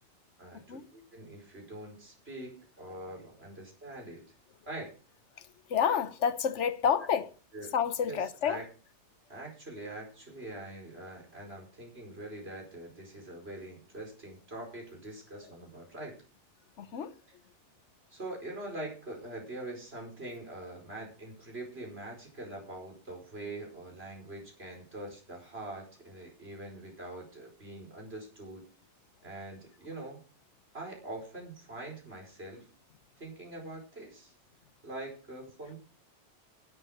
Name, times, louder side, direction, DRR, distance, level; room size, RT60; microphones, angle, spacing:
voice 1, 0.4-4.3 4.7-4.9 7.5-7.7 8.1-8.6 9.3-16.1 17.3-17.4 18.1-28.6 29.2-30.2 30.7-32.7 33.2-34.3 34.8-35.8, right 2 dB, 60° right, 5.3 m, -43 dB
voice 2, 5.7-7.3 7.7-8.6 16.8-17.1, left 8 dB, 85° left, 1.2 m, -29 dB
11.0 x 9.2 x 6.5 m
omnidirectional pair, 1.2 m